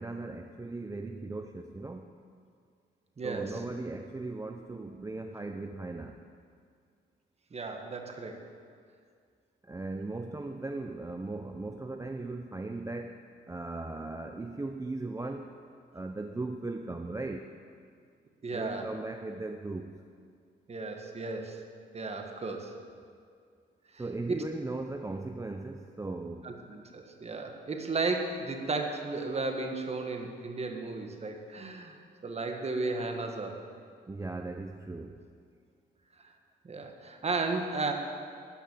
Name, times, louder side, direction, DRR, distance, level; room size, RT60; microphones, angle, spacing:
voice 1, 0.0-2.1 3.2-6.2 9.6-15.5 15.9-17.5 18.5-19.9 24.0-26.5 34.1-35.2, right 2 dB, 15° right, 5 dB, 0.5 m, -38 dB
voice 2, 3.2-3.6 7.5-8.5 18.4-18.9 20.7-21.6 21.9-22.8 23.9-24.0 24.3-24.4 26.4-33.7 36.6-37.9, right 3 dB, 30° right, 4 dB, 1.5 m, -34 dB
13.0 x 5.8 x 8.5 m, 2.2 s
cardioid pair, 90°, 20 cm